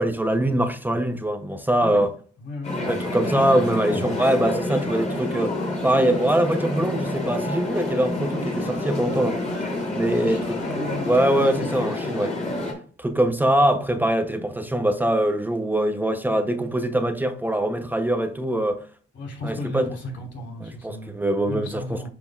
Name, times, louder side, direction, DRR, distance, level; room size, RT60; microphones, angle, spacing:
voice 1, 0.0-2.1 2.9-5.6 5.8-9.4 9.9-10.4 11.0-12.4 13.0-18.9 19.4-19.9 20.6-22.1, right 1 dB, 10° right, 0.7 m, -23 dB
voice 2, 2.4-3.4 3.9-4.2 9.5-9.7 10.2-12.0 19.1-22.1, left 2 dB, 70° left, 3.0 m, -35 dB
sound 1, 2.6-12.7, left 2 dB, 35° left, 3.1 m, -28 dB
10.5 x 5.1 x 2.4 m
cardioid pair, 90°, 20 cm